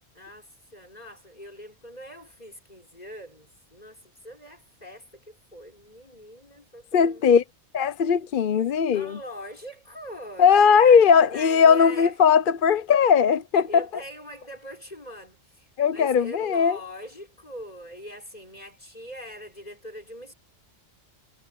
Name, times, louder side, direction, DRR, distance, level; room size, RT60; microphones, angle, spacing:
voice 1, 0.1-7.2 8.9-12.1 13.7-20.3, equal, 35° left, 5.8 m, -42 dB
voice 2, 6.9-7.4 7.7-9.2 10.4-13.8 15.8-16.8, left 6 dB, 55° left, 0.8 m, -19 dB
omnidirectional pair, 1.2 m